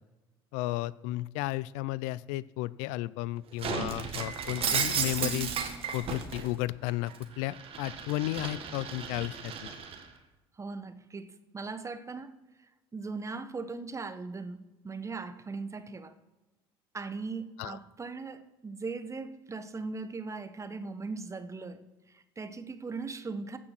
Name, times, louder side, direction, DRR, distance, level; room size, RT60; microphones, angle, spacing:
voice 1, 0.5-5.5 5.9-9.7 17.6-17.8, left 17 dB, 65° left, 0.4 m, -33 dB
Shatter, 3.6-6.5 6.9-10.0, right 6 dB, 50° right, 1.9 m, -34 dB
voice 2, 10.6-12.4 12.9-16.1 16.9-23.6, right 4 dB, 25° right, 1.2 m, -39 dB
15.5 x 6.1 x 6.0 m
hypercardioid pair, 65°, 13 cm